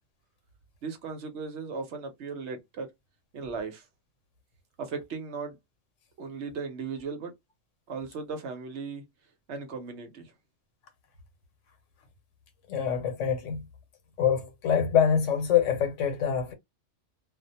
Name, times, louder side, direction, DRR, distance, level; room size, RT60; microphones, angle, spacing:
voice 1, 0.8-2.9 3.3-3.8 4.8-5.6 6.2-7.3 7.9-9.0 9.5-10.3, right 5 dB, 65° right, 1.0 m, -37 dB
voice 2, 12.7-13.6 14.2-16.5, left 8 dB, 75° left, 1.1 m, -25 dB
2.4 x 2.1 x 2.7 m
omnidirectional pair, 1.3 m